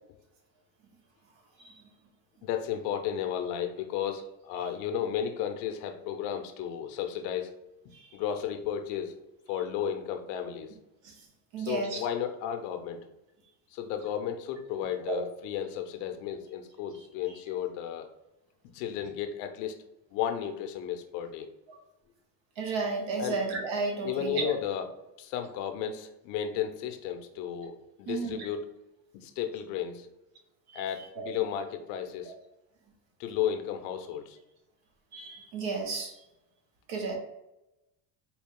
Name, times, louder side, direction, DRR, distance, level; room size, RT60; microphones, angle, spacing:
voice 1, 2.4-7.5 8.1-9.1 9.5-10.7 11.6-13.1 13.7-18.1 18.7-19.7 20.1-21.5 23.2-23.4 24.0-24.8 25.2-28.7 29.1-30.1 30.7-32.3 33.2-34.4, left 9 dB, 75° left, 7 dB, 0.7 m, -33 dB
voice 2, 11.5-12.0 15.1-15.2 17.3-17.4 21.7-21.8 22.6-24.5 28.1-28.5 30.7-30.8 31.1-31.3 35.1-36.1 36.9-37.2, right 4 dB, 65° right, 1 dB, 1.4 m, -33 dB
4.5 x 2.3 x 3.7 m, 0.91 s
supercardioid pair, 80°, 49 cm